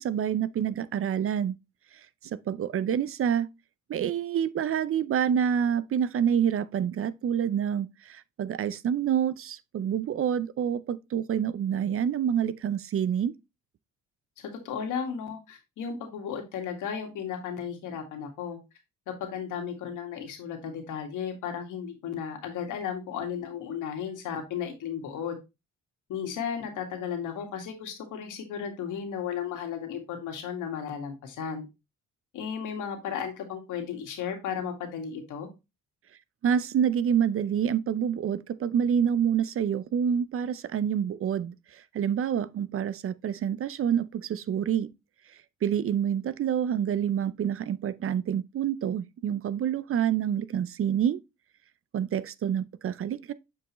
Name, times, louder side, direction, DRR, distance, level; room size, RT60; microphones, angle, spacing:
voice 1, 0.0-1.5 2.2-3.5 3.9-13.3 36.4-44.9 45.6-51.2 51.9-53.3, right 8 dB, 45° right, 0.5 m, -27 dB
voice 2, 14.4-18.6 19.1-25.4 26.1-31.7 32.3-35.5, left 7 dB, 85° left, 1.9 m, -34 dB
7.8 x 4.6 x 3.0 m
cardioid pair, 90°, 30 cm